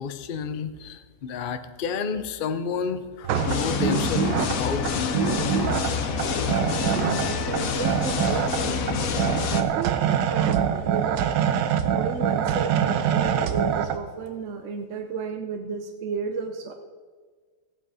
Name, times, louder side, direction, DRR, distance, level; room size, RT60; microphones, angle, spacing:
voice 1, 0.0-5.6, left 6 dB, 85° left, 9 dB, 0.4 m, -30 dB
sound 1, 3.2-14.0, right 8 dB, 75° right, 1.4 m, -25 dB
sound 2, 3.3-9.6, left 6 dB, 55° left, 1.2 m, -27 dB
voice 2, 6.6-11.2 11.9-16.7, right 5 dB, 55° right, 6 dB, 0.9 m, -33 dB
15.0 x 9.0 x 4.9 m, 1.5 s
omnidirectional pair, 2.0 m